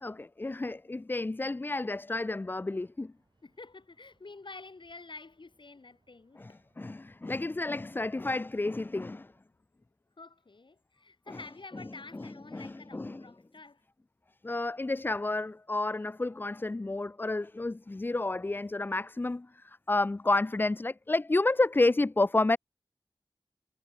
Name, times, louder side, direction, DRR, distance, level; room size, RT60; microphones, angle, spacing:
voice 1, 0.0-3.1 6.4-9.3 11.3-11.4 12.1-13.3 14.4-22.6, left 2 dB, 25° left, 0.3 m, -30 dB
sound 1, 2.8-9.4, right 3 dB, 60° right, 6.6 m, -75 dB
voice 2, 3.4-6.6 10.2-13.8, left 3 dB, 65° left, 3.1 m, -49 dB
wide cardioid pair, 65°, 9 cm